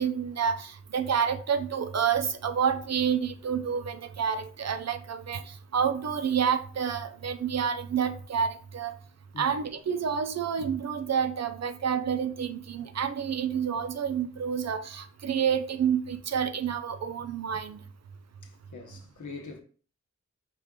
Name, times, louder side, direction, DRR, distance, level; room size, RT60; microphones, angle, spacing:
voice 1, 0.0-8.9 9.4-17.8, right 7 dB, 60° right, 0.5 m, -29 dB
voice 2, 9.3-9.7 18.4-19.6, left 4 dB, 85° left, 0.9 m, -43 dB
4.9 x 2.5 x 3.6 m
wide cardioid pair, 85°, 29 cm